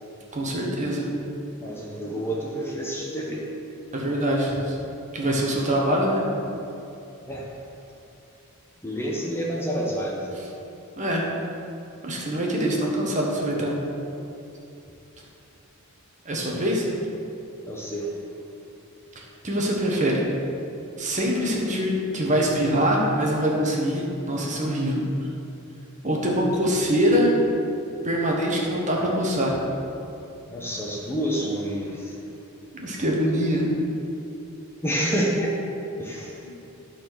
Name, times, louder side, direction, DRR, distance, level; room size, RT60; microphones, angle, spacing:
voice 1, 0.3-1.1 3.9-4.8 5.1-6.2 11.0-11.3 12.0-13.7 16.2-16.8 19.1-20.3 21.0-25.0 26.0-27.4 28.0-29.6 32.8-33.6 36.4-36.5, equal, 35° right, -2 dB, 1.4 m, -24 dB
voice 2, 1.6-3.4 7.3-7.5 8.8-10.5 17.7-18.2 26.2-26.4 30.5-32.2 34.8-35.6 36.0-36.5, right 1 dB, 10° left, -3 dB, 1.1 m, -28 dB
12.5 x 4.4 x 6.3 m, 2.8 s
head